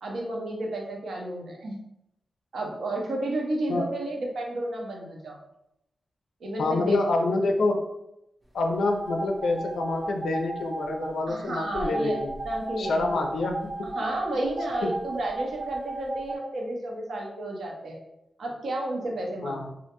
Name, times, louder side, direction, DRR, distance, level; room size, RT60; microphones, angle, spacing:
voice 1, 0.0-1.8 2.5-5.4 6.4-7.0 11.3-13.2 13.8-18.0 18.4-19.7, right 1 dB, 75° right, -1 dB, 0.5 m, -32 dB
voice 2, 6.6-7.9 8.5-12.3 12.8-13.9 14.8-14.9 19.4-19.7, left 2 dB, 85° left, 3 dB, 0.3 m, -27 dB
sound 1, 8.8-11.1 11.6-14.1 14.6-16.3, right 2 dB, 25° right, 0.5 m, -34 dB
2.4 x 2.1 x 2.8 m, 0.85 s
wide cardioid pair, 145°, 0 cm